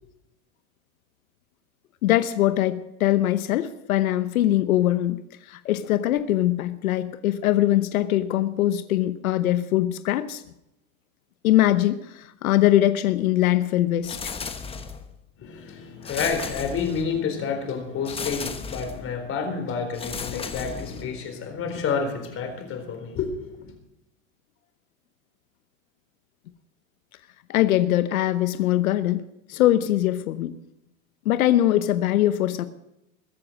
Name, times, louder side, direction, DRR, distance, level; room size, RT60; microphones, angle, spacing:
voice 1, 2.0-10.4 11.4-14.3 27.5-29.2 29.5-30.5 31.2-32.6, left 13 dB, 90° left, 12 dB, 1.0 m, -22 dB
sound 1, 14.0-15.1 16.0-17.2 18.0-19.1 19.9-21.2, left 5 dB, 15° left, 1.0 m, -35 dB
voice 2, 15.4-23.7, left 5 dB, 30° left, 6 dB, 4.1 m, -29 dB
22.0 x 8.0 x 6.4 m, 0.86 s
supercardioid pair, 135°, 41 cm